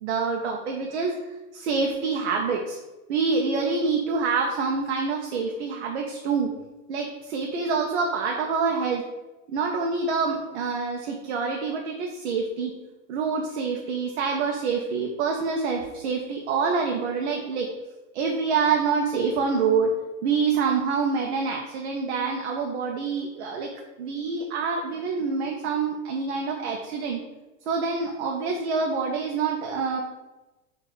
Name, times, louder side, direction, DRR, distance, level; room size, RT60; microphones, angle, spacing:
voice 1, 0.0-1.1 1.5-2.8 3.1-6.5 6.9-9.0 9.5-12.7 13.1-17.7 18.1-19.9 20.2-23.7 24.0-27.2 27.7-30.0, right 5 dB, 55° right, 1 dB, 0.5 m, -26 dB
3.9 x 2.4 x 4.3 m, 1.1 s
supercardioid pair, 180°, 40 cm